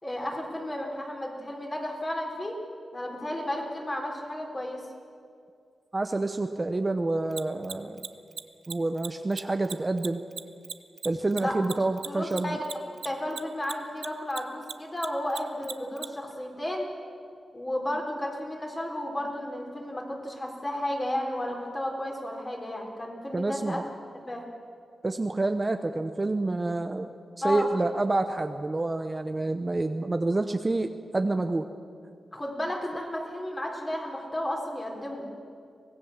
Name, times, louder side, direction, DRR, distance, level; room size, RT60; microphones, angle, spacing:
voice 1, 0.0-2.6 2.9-4.8 11.3-11.6 12.0-12.6 13.0-16.9 17.5-23.8 24.3-24.4 27.4-27.7 32.3-35.3, left 1 dB, 20° left, 1 dB, 4.2 m, -33 dB
voice 2, 5.9-8.0 8.7-10.2 11.0-12.6 23.3-23.9 25.0-27.1 27.4-31.7, right 2 dB, 25° right, 7 dB, 0.9 m, -28 dB
Mechanisms, 7.3-14.1 14.3-16.1, right 6 dB, 75° right, 0.8 m, -36 dB
24.5 x 18.5 x 7.4 m, 2.4 s
wide cardioid pair, 110°, 0 cm